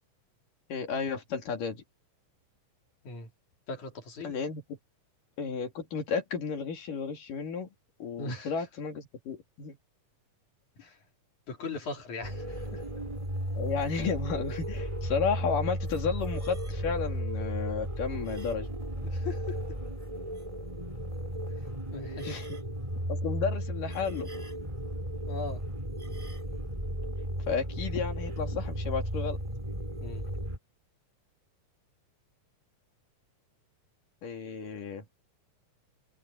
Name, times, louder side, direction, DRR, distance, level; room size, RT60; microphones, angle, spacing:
voice 1, 0.7-1.8 4.2-4.8 5.4-7.7 8.0-9.8 13.6-18.7 22.3-22.6 23.1-24.3 27.5-29.4 34.2-35.0, left 5 dB, 80° left, 4.7 m, -33 dB
voice 2, 3.7-4.3 8.2-8.5 10.8-11.0 11.5-12.8 19.0-19.6 21.9-22.4 25.3-25.7 30.0-30.3, left 3 dB, 65° left, 5.1 m, -39 dB
sound 1, 12.2-30.6, equal, 10° right, 6.0 m, -35 dB
omnidirectional pair, 3.7 m